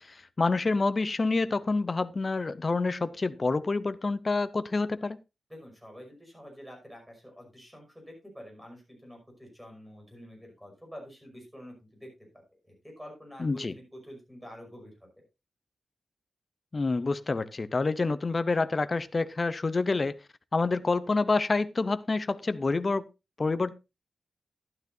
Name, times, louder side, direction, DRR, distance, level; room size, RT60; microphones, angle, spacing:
voice 1, 0.0-5.2 13.4-13.7 16.7-20.2 20.5-23.1 23.4-23.7, left 3 dB, 35° left, 0.7 m, -27 dB
voice 2, 5.5-15.2, equal, ahead, 5.8 m, -48 dB
12.0 x 12.0 x 2.7 m
wide cardioid pair, 120°, 0 cm